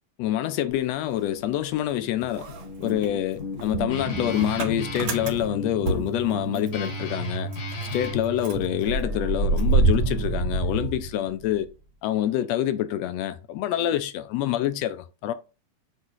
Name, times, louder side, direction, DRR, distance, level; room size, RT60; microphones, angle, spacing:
voice 1, 0.2-2.5 2.8-7.5 7.9-11.7 12.0-15.3, left 12 dB, 80° left, 1.6 m, -26 dB
Motor vehicle (road) / Engine starting, 0.7-1.9 2.2-6.9 7.2-7.3 7.5-11.6, right 3 dB, 60° right, 1.9 m, -27 dB
Guitar, 2.5-8.2, left 4 dB, 50° left, 1.2 m, -35 dB
sound 1, 3.7-8.8, right 10 dB, 80° right, 2.0 m, -36 dB
8.1 x 3.3 x 4.6 m
omnidirectional pair, 3.3 m